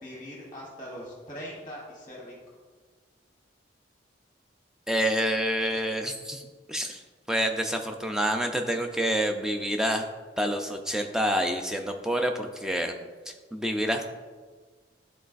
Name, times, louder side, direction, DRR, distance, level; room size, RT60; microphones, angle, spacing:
voice 1, 0.0-2.4, equal, 20° left, -3 dB, 0.9 m, -41 dB
voice 2, 4.9-7.0 7.3-10.0 10.4-12.9 13.3-14.0, equal, 5° right, 4 dB, 0.4 m, -28 dB
10.5 x 3.9 x 2.5 m, 1.4 s
head